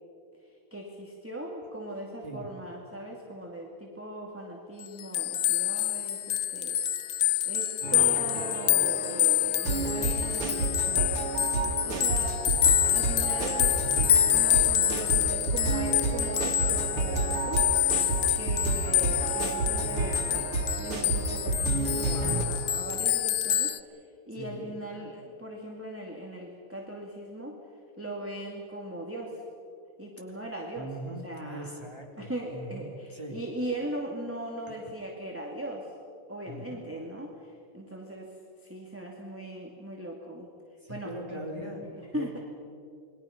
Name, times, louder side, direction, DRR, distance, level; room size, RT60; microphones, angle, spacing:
voice 1, 0.4-7.2 7.4-12.4 12.9-13.8 14.3-18.1 18.3-27.6 28.0-29.4 30.0-30.9 31.2-31.9 32.2-35.9 36.3-40.5 40.9-41.5 41.8-42.4, right 1 dB, 5° right, -1 dB, 2.1 m, -39 dB
sound 1, 4.8-23.8, left 11 dB, 75° left, 0.7 m, -27 dB
sound 2, 7.8-22.4, right 3 dB, 80° right, 3.0 m, -31 dB
voice 2, 24.3-24.7 30.7-33.4 36.5-36.8 40.8-41.8 42.1-42.4, equal, 10° left, -1 dB, 3.4 m, -41 dB
28.5 x 22.0 x 5.9 m, 2.4 s
omnidirectional pair, 2.4 m